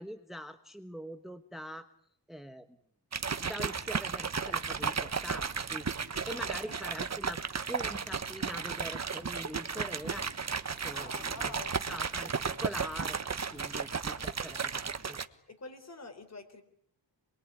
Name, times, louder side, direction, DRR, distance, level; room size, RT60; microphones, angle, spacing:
voice 1, 0.0-1.9 2.3-2.7 3.4-5.9 6.3-7.4 7.7-10.3 10.8-11.5 11.9-13.2 13.5-14.7 15.1-15.2, equal, ahead, 9 dB, 1.1 m, -43 dB
sound 1, 3.1-15.2, right 5 dB, 35° right, 1.3 m, -34 dB
voice 2, 6.1-6.7 10.9-11.8 15.5-16.6, left 3 dB, 35° left, 8 dB, 4.1 m, -47 dB
27.5 x 22.0 x 9.8 m, 0.69 s
wide cardioid pair, 150°, 44 cm